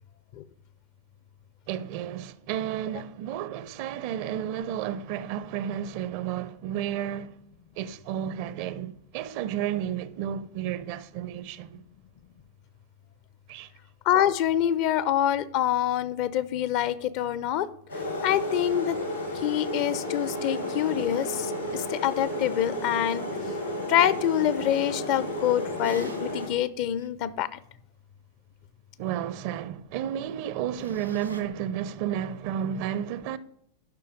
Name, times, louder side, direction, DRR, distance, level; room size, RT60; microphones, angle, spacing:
voice 1, 1.7-7.4 7.8-11.8 13.5-13.7 29.0-33.4, right 10 dB, 45° right, 0.6 m, -32 dB
voice 2, 14.0-17.7 18.2-19.0 19.4-23.2 23.9-27.6, left 11 dB, 45° left, 0.6 m, -26 dB
sound 1, 17.9-26.5, left 1 dB, 90° left, 3.8 m, -32 dB
sound 2, 25.8-26.5 27.0-27.1 30.8-31.4, equal, 85° right, 1.1 m, -42 dB
11.5 x 5.6 x 4.9 m
figure-of-eight pair, 90°, 0 cm